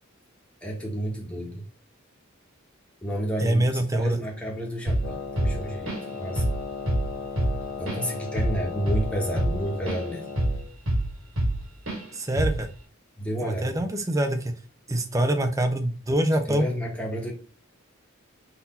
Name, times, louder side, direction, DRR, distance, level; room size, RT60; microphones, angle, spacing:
voice 1, 0.6-1.6 3.0-3.6 3.9-5.9 6.2-6.4 7.8-10.2 13.2-13.7 15.2-15.3 16.5-17.3, right 1 dB, 5° left, -2 dB, 1.2 m, -30 dB
voice 2, 3.4-4.2 12.1-12.7 13.4-14.5 14.9-16.7, right 1 dB, 15° right, 6 dB, 0.6 m, -24 dB
Drum kit / Drum, 4.9-5.1 5.4-6.1 6.4-6.6 6.9-10.0 10.4-11.6 11.9-12.0 12.4-12.7, right 1 dB, 65° right, 2.0 m, -26 dB
Wind instrument woodwind instrument, 5.0-10.7, left 5 dB, 85° left, 0.8 m, -36 dB
4.0 x 2.8 x 4.2 m, 0.37 s
head